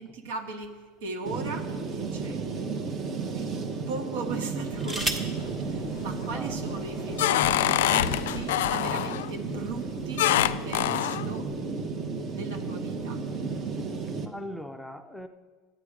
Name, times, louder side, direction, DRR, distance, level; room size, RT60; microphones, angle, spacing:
voice 1, 0.0-2.8 3.3-3.5 3.9-10.3 10.6-11.5 12.3-13.2, right 4 dB, 90° right, 5 dB, 1.4 m, -38 dB
sound 1, 0.6-1.9 2.6-2.7 4.4-5.4 6.6-6.7 7.0-7.4, right 2 dB, 15° right, 1.2 m, -35 dB
sound 2, 1.2-14.3, right 4 dB, 35° right, 0.9 m, -33 dB
sound 3, 4.8-5.4 5.8-6.3 6.7-9.3 10.2-11.3, left 14 dB, 90° left, 0.3 m, -25 dB
voice 2, 14.2-15.3, left 1 dB, ahead, 7 dB, 0.6 m, -40 dB
12.0 x 8.9 x 4.9 m, 1.4 s
supercardioid pair, 140°, 0 cm